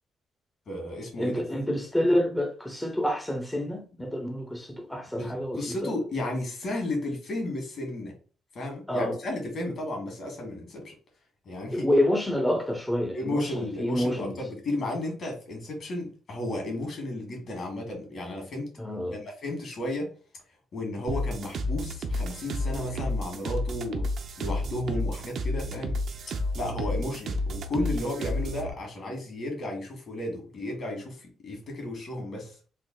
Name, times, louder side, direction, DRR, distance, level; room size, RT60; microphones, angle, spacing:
voice 1, 0.7-1.4 5.2-8.1 8.5-10.9 11.5-11.9 13.1-18.7 19.1-20.1 20.7-24.0 24.4-25.9 26.5-32.6, left 1 dB, 60° left, 1.8 m, -33 dB
voice 2, 1.2-6.0 8.9-9.2 11.7-14.4 18.8-19.2, left 1 dB, 5° left, 0.6 m, -28 dB
sound 1, 21.1-28.7, left 1 dB, 65° right, 0.6 m, -31 dB
3.7 x 2.3 x 3.8 m
cardioid pair, 90°, 0 cm